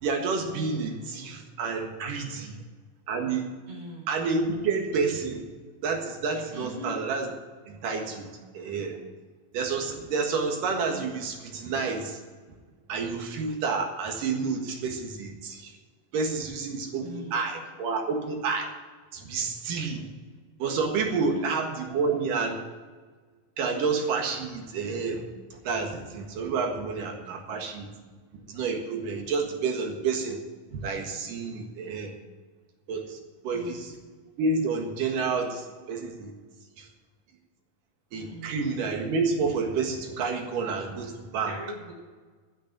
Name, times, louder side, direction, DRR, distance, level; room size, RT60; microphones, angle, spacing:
voice 1, 0.0-2.5 3.1-3.4 4.1-5.4 5.8-7.3 7.7-9.0 9.5-12.2 12.9-15.7 16.1-18.7 19.1-20.0 20.6-22.6 23.6-25.2 25.6-27.9 28.5-30.4 30.7-32.1 32.9-33.2 33.4-33.9 34.4-36.3 38.1-41.5, right 4 dB, 75° right, 2 dB, 3.2 m, -29 dB
voice 2, 3.7-4.1 6.5-7.0 17.0-17.4 21.1-21.5 33.5-34.0 38.3-38.8 41.5-41.9, right 1 dB, 55° right, -1 dB, 4.9 m, -41 dB
13.5 x 6.3 x 8.8 m, 1.4 s
omnidirectional pair, 3.8 m